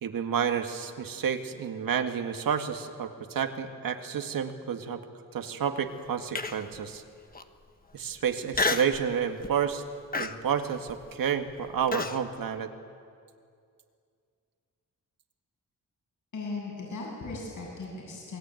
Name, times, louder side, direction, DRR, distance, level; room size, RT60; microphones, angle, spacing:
voice 1, 0.0-5.0 5.3-7.0 7.9-9.8 10.1-12.7, right 7 dB, 80° right, 6 dB, 2.0 m, -30 dB
Human voice, 6.4-6.8 7.3-7.4 8.5-9.0 9.4-9.7 10.1-12.2, left 3 dB, 25° left, 1.2 m, -30 dB
voice 2, 16.3-18.4, left 3 dB, 60° left, -2 dB, 8.0 m, -37 dB
28.5 x 21.5 x 9.2 m, 2.3 s
wide cardioid pair, 150°, 34 cm